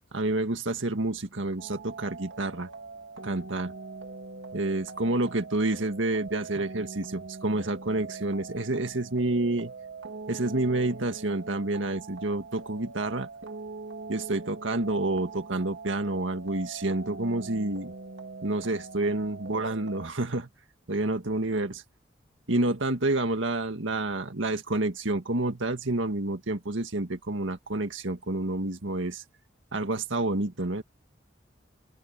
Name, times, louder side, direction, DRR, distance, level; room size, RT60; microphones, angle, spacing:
voice 1, 0.1-2.7 3.2-3.7 4.5-9.7 10.3-13.3 14.1-17.9 18.4-20.5 20.9-21.8 22.5-29.2 29.7-30.8, right 2 dB, 85° right, 1.8 m, -29 dB
sound 1, 1.6-20.1, right 3 dB, 70° right, 2.1 m, -42 dB
open air
head